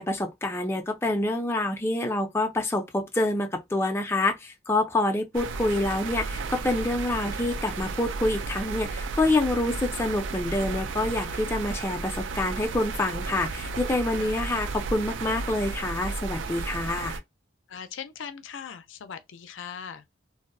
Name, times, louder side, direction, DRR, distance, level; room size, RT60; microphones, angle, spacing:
voice 1, 0.0-17.2, left 2 dB, 15° left, 0.4 m, -27 dB
sound 1, 5.3-17.2, right 4 dB, 80° right, 0.4 m, -33 dB
voice 2, 14.2-14.5 17.7-20.0, left 7 dB, 85° left, 0.4 m, -40 dB
2.6 x 2.0 x 2.5 m
head